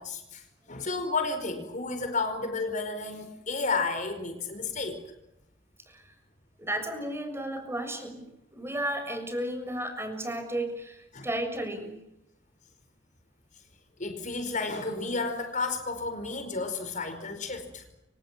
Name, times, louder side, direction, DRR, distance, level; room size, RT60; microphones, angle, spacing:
voice 1, 0.0-5.0 11.1-11.3 14.0-17.8, left 3 dB, 45° left, 7 dB, 4.9 m, -32 dB
voice 2, 6.6-8.2 8.5-12.0, right 1 dB, 15° right, 7 dB, 6.9 m, -33 dB
29.5 x 26.0 x 7.5 m, 0.87 s
head